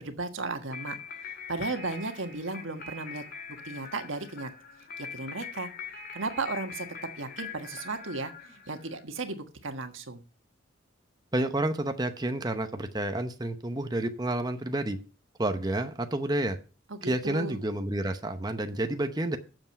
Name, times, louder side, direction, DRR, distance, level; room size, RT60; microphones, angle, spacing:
voice 1, 0.0-3.2 3.6-4.5 5.0-5.7 6.1-6.9 7.2-10.2 16.9-17.6, right 3 dB, 90° right, 7 dB, 1.5 m, -35 dB
sound 1, 0.7-9.0, left 6 dB, 50° left, 2.0 m, -43 dB
voice 2, 11.3-15.0 15.4-16.6 17.0-19.4, right 1 dB, 20° right, 7 dB, 0.8 m, -30 dB
9.1 x 7.1 x 5.7 m, 0.36 s
head